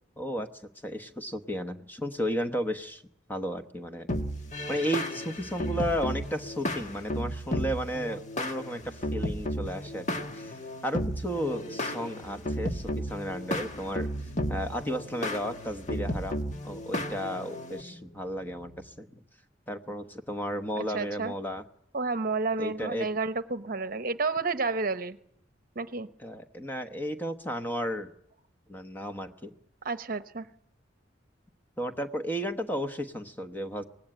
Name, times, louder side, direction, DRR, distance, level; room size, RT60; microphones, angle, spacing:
voice 1, 0.2-0.5 0.8-3.0 3.3-4.1 4.7-10.5 10.8-14.1 14.5-16.4 16.6-19.1 19.7-21.6 22.6-23.1 26.2-28.1 28.7-29.5 31.8-33.8, equal, 10° left, 6 dB, 1.1 m, -33 dB
sound 1, 4.1-17.8, equal, 40° left, 1.4 m, -34 dB
sound 2, 10.6-18.9, left 3 dB, 60° left, 4.8 m, -53 dB
voice 2, 20.8-21.3 21.9-25.2 25.7-26.1 29.8-30.5, right 4 dB, 50° right, 11 dB, 1.0 m, -30 dB
24.0 x 19.0 x 9.0 m, 0.76 s
head